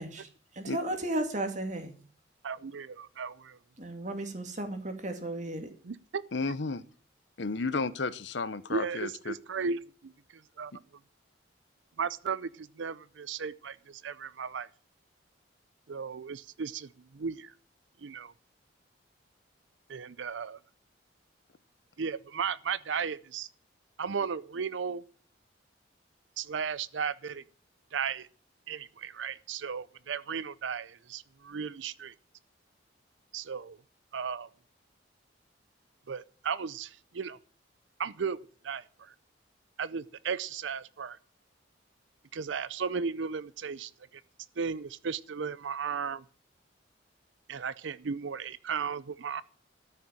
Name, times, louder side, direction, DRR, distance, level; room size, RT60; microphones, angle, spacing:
voice 1, 0.0-1.9 3.8-5.7, right 1 dB, 40° right, 2.2 m, -35 dB
voice 2, 2.4-3.6 5.8-6.2 8.7-10.7 12.0-14.7 15.9-17.5 18.0-18.3 19.9-20.6 22.0-23.5 24.0-25.0 26.4-27.4 27.9-28.3 28.7-32.1 33.3-33.8 34.1-34.5 36.1-37.4 38.0-38.4 38.6-39.1 39.8-41.2 42.3-44.2 44.6-46.2 47.5-49.4, right 6 dB, 75° right, 0.5 m, -35 dB
voice 3, 6.3-6.8 7.4-9.3, left 3 dB, 70° left, 0.9 m, -32 dB
13.0 x 6.5 x 8.7 m
head